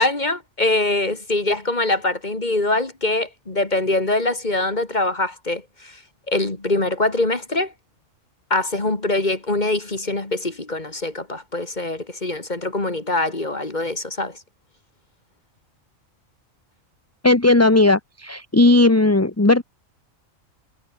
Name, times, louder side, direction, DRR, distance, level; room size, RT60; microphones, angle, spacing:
voice 1, 0.0-6.0 6.3-7.7 8.5-14.4, left 2 dB, 35° left, 2.5 m, -23 dB
voice 2, 17.2-19.6, left 2 dB, 10° left, 1.1 m, -16 dB
omnidirectional pair, 1.4 m